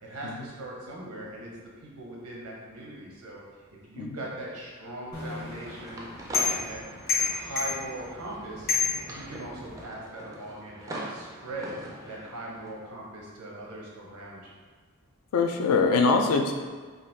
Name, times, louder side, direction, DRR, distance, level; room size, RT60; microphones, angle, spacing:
voice 1, 0.0-1.5 1.8-3.6 3.9-6.1 6.4-6.8 7.1-8.7 9.1-11.7 12.1-14.5, right 1 dB, 85° right, -3 dB, 0.8 m, -40 dB
sound 1, 5.1-9.8, left 5 dB, 45° left, 0.9 m, -31 dB
sound 2, 5.6-12.7, right 1 dB, 15° right, 0.3 m, -42 dB
voice 2, 15.3-16.5, left 4 dB, 75° left, 4 dB, 0.4 m, -23 dB
3.9 x 2.4 x 2.6 m, 1.5 s
head